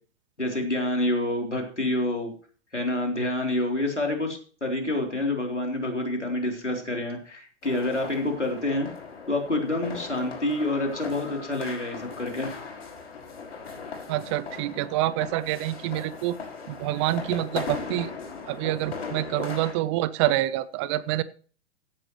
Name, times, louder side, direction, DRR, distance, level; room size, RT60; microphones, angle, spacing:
voice 1, 0.4-2.3 2.7-8.9 9.3-12.5, left 1 dB, 90° left, 2 dB, 3.6 m, -27 dB
sound 1, 7.6-19.7, left 5 dB, 65° left, 5.6 m, -38 dB
voice 2, 14.1-16.4 16.7-18.1 18.5-21.2, right 15 dB, 25° right, 18 dB, 0.6 m, -27 dB
15.5 x 11.0 x 3.1 m, 0.41 s
figure-of-eight pair, 110°, 34 cm